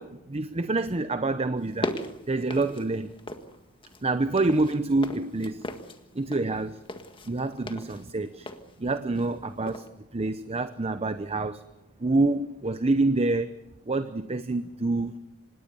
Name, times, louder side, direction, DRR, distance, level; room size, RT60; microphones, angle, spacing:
voice 1, 0.0-2.0 2.3-3.1 4.0-5.7 6.1-6.8 7.3-8.5 8.8-9.8 10.1-11.6 12.0-13.5 13.9-15.1, right 2 dB, 30° right, 11 dB, 0.8 m, -27 dB
sound 1, 1.6-3.5 3.8-9.4 9.7-9.9, left 1 dB, 25° left, 1.7 m, -38 dB
26.0 x 20.5 x 6.9 m, 0.88 s
head